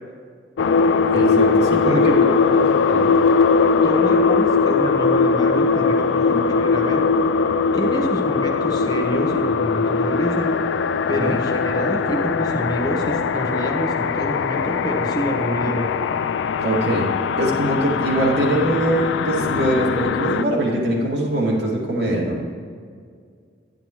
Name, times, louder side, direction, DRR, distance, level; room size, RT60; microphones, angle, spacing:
sound 1, 0.6-20.4, left 5 dB, 75° left, 0.3 m, -20 dB
voice 1, 1.1-2.2 2.5-3.1 6.1-6.4 11.1-11.4 16.6-22.4, right 1 dB, 65° right, -4 dB, 2.2 m, -22 dB
voice 2, 1.9-2.4 3.8-7.0 7.7-10.5 11.1-15.9, equal, 20° left, 0 dB, 1.0 m, -27 dB
11.0 x 9.9 x 3.1 m, 2.1 s
head